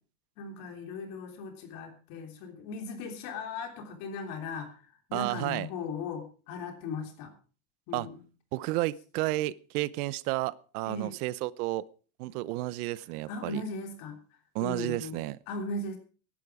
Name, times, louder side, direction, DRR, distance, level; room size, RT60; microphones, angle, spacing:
voice 1, 0.4-4.8 5.1-7.3 7.9-8.2 10.9-11.1 13.3-14.2 14.6-15.2 15.5-16.0, left 3 dB, 50° left, 3.4 m, -38 dB
voice 2, 5.1-5.7 7.9-8.1 8.5-11.8 12.2-13.6 14.5-15.4, right 18 dB, 80° right, 0.9 m, -32 dB
16.0 x 11.5 x 4.8 m
cardioid pair, 175°, 44 cm